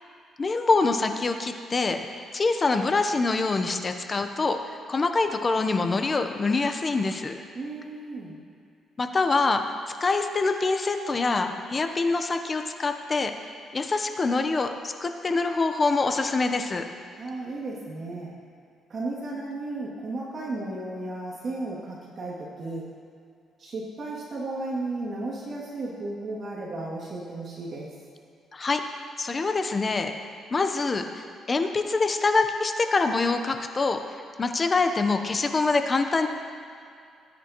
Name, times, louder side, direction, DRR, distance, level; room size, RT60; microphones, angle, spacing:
voice 1, 0.4-2.0 2.3-7.4 9.0-9.6 10.0-13.3 13.7-16.8 28.5-28.8 29.2-30.1 30.5-34.0 34.4-36.3, left 3 dB, 30° left, 6 dB, 0.9 m, -25 dB
voice 2, 7.5-8.4 17.2-18.3 18.9-22.9 23.6-27.9, right 2 dB, 50° right, -5 dB, 2.5 m, -34 dB
18.5 x 9.9 x 3.0 m, 2.4 s
cardioid pair, 90°, 0 cm